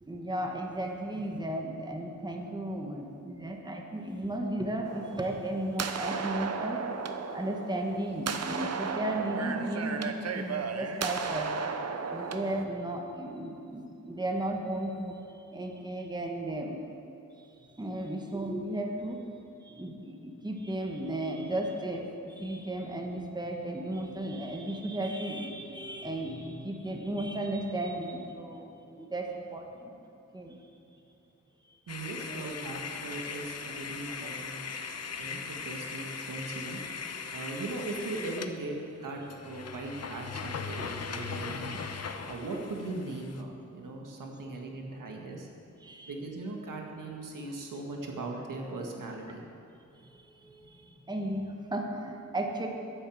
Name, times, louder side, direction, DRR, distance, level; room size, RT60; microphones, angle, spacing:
voice 1, 0.0-6.8 7.3-11.5 12.1-15.2 15.5-16.8 17.7-19.2 19.6-30.0 30.3-30.6 34.2-34.3 35.0-35.2 45.8-46.1 49.9-52.7, right 1 dB, 15° right, 2 dB, 1.3 m, -35 dB
sound 1, 4.8-12.7, right 5 dB, 55° right, 0.8 m, -35 dB
sound 2, 31.9-38.6 39.0-39.1 39.3-43.4, left 5 dB, 55° left, 0.8 m, -39 dB
voice 2, 31.9-34.7 35.2-36.8 37.3-41.8 42.3-45.5 46.1-49.4, right 2 dB, 90° right, 1 dB, 1.8 m, -39 dB
10.5 x 9.8 x 7.7 m, 2.6 s
wide cardioid pair, 130°, 31 cm